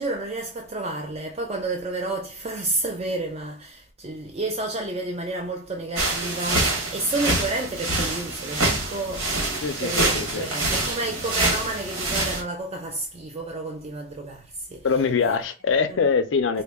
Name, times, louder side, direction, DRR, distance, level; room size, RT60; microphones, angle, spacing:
voice 1, 0.0-9.3 9.8-14.9 15.9-16.1 16.5-16.6, right 2 dB, 30° right, 0.4 m, -30 dB
sound 1, 6.0-12.4, right 2 dB, 90° right, 1.4 m, -26 dB
voice 2, 9.6-10.5 14.8-16.6, left 5 dB, 70° left, 0.4 m, -23 dB
3.8 x 2.1 x 3.4 m
head